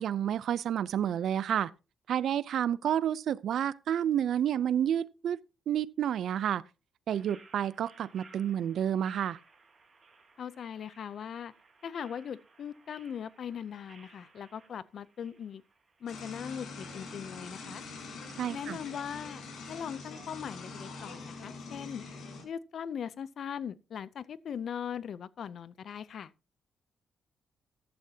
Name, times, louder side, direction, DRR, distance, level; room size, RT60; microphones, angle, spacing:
voice 1, 0.0-1.7 2.1-5.4 5.7-6.6 7.1-9.4 18.4-18.8, right 9 dB, 65° right, 0.5 m, -30 dB
sound 1, 7.1-18.4, right 4 dB, 25° right, 4.2 m, -60 dB
voice 2, 10.4-11.5 11.8-15.6 16.0-17.8 18.5-22.0 22.4-26.3, left 8 dB, 50° left, 0.6 m, -40 dB
sound 2, 16.1-22.4, left 3 dB, 70° left, 6.1 m, -44 dB
14.0 x 12.0 x 2.8 m
cardioid pair, 160°, 0 cm